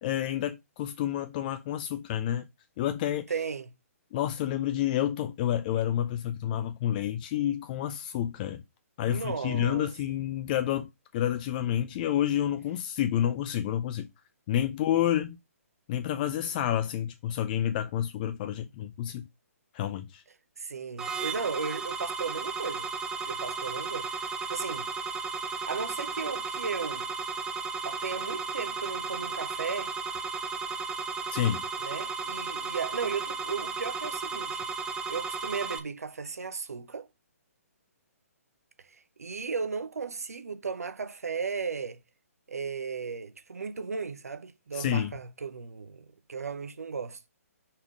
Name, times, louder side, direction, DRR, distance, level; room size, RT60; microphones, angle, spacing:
voice 1, 0.0-2.4 2.8-3.3 4.1-8.6 9.0-14.1 14.5-15.4 15.9-19.2 19.7-20.2 31.3-31.7 44.7-45.1, left 11 dB, 35° left, 0.5 m, -29 dB
voice 2, 3.3-3.7 9.0-9.9 20.6-22.9 23.2-24.8 25.4-27.1 27.8-29.9 31.8-34.6 35.1-37.1 39.2-42.0 42.5-47.2, right 5 dB, 80° right, 0.8 m, -35 dB
sound 1, 21.0-35.8, right 4 dB, 10° right, 0.6 m, -34 dB
5.7 x 3.6 x 4.8 m
figure-of-eight pair, 135°, 8 cm